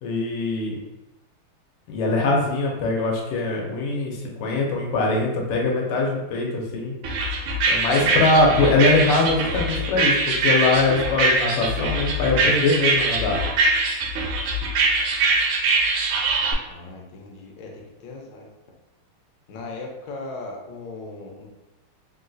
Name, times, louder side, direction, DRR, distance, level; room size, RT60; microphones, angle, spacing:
voice 1, 0.0-0.8 1.9-6.9 7.7-13.4, left 2 dB, 85° left, -1 dB, 1.6 m, -22 dB
sound 1, 7.0-16.5, right 3 dB, 75° right, 1.3 m, -22 dB
voice 2, 16.7-18.5 19.5-21.5, left 3 dB, 70° left, 0 dB, 1.1 m, -38 dB
3.8 x 2.3 x 2.5 m, 1.0 s
omnidirectional pair, 2.4 m